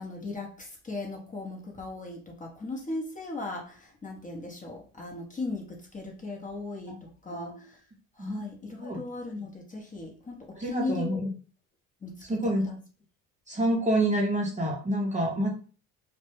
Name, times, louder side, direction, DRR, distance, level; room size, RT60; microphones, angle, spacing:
voice 1, 0.0-7.8 8.2-11.2 12.0-12.8, left 2 dB, 20° left, 0 dB, 0.7 m, -37 dB
voice 2, 10.6-11.3 12.3-12.6 13.5-15.5, right 1 dB, 20° right, -1 dB, 0.6 m, -27 dB
2.1 x 2.1 x 3.0 m, 0.38 s
hypercardioid pair, 70°, 42 cm